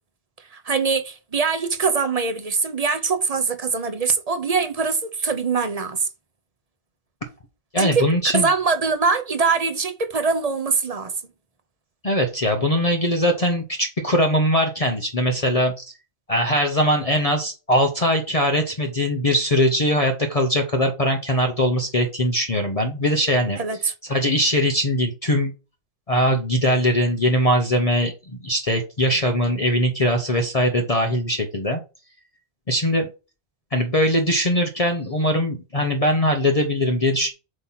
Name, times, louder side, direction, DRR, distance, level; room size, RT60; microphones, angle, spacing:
voice 1, 0.5-6.1 7.8-8.1 8.3-11.1 23.6-23.9, right 4 dB, 40° right, 0.7 m, -23 dB
voice 2, 7.7-8.5 12.0-15.8 16.3-23.6 24.1-25.5 26.1-31.8 32.7-33.1 33.7-37.3, equal, 35° left, 0.9 m, -21 dB
7.9 x 2.8 x 5.7 m
omnidirectional pair, 1.1 m